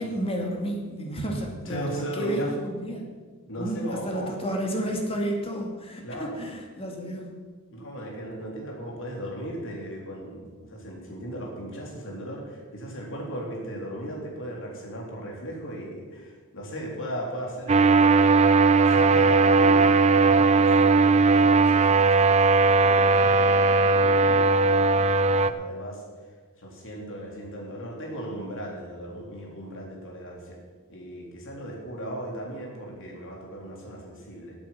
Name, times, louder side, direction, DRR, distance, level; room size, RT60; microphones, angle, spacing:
voice 1, 0.0-3.1 3.6-7.3, equal, 25° left, 1 dB, 2.3 m, -31 dB
voice 2, 1.7-2.6 3.5-4.4 6.0-6.4 7.7-18.2 18.7-22.3 22.9-26.0 26.6-30.6 30.9-34.6, right 1 dB, 60° left, -1 dB, 3.8 m, -37 dB
sound 1, 17.7-25.5, right 3 dB, 30° right, 0.5 m, -18 dB
15.5 x 8.9 x 5.9 m, 1.5 s
head